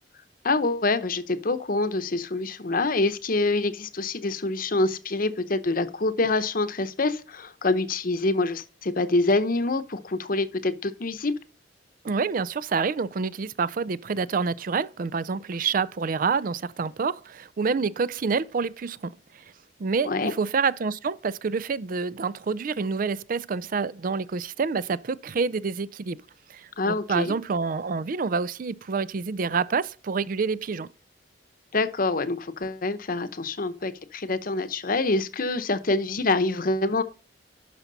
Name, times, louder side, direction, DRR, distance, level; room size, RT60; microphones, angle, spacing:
voice 1, 0.4-11.3 20.0-20.3 26.8-27.3 31.7-37.0, left 2 dB, 50° left, 0.9 m, -26 dB
voice 2, 12.0-19.1 19.8-26.2 26.5-30.9, right 5 dB, 50° right, 0.4 m, -27 dB
11.0 x 5.8 x 4.0 m
head